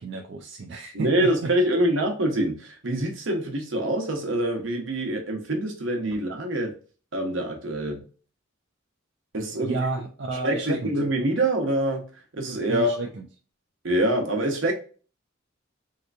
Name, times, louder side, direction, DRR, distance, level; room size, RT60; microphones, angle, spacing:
voice 1, 0.0-1.5 9.6-10.9 12.7-13.3, right 3 dB, 60° right, 0.4 m, -31 dB
voice 2, 0.9-6.7 7.1-8.0 9.3-9.9 10.4-12.0 12.3-13.0 13.8-14.7, right 1 dB, 80° right, 1.0 m, -25 dB
3.3 x 2.9 x 2.5 m
head